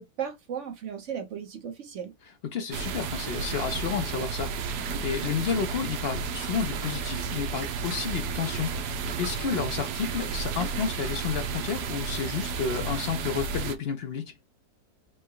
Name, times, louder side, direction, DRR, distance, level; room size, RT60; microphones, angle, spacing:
voice 1, 0.0-2.1, right 8 dB, 55° right, 1.1 m, -36 dB
voice 2, 2.4-14.3, left 6 dB, 65° left, 0.6 m, -31 dB
sound 1, 2.7-13.8, right 5 dB, 85° right, 1.3 m, -32 dB
4.5 x 2.2 x 4.5 m
omnidirectional pair, 1.7 m